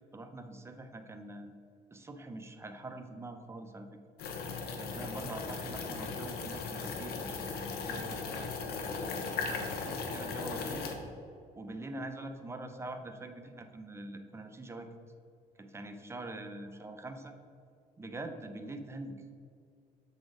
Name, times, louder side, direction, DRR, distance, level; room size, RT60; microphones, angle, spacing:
voice 1, 0.1-1.5 1.9-3.9 4.8-8.5 9.5-10.9 11.6-14.9 15.6-17.3 18.0-19.1, right 2 dB, 15° right, 6 dB, 0.7 m, -44 dB
sound 1, 4.2-10.9, left 4 dB, 70° left, 1.0 m, -37 dB
7.1 x 4.2 x 5.0 m, 2.3 s
cardioid pair, 110°, 17 cm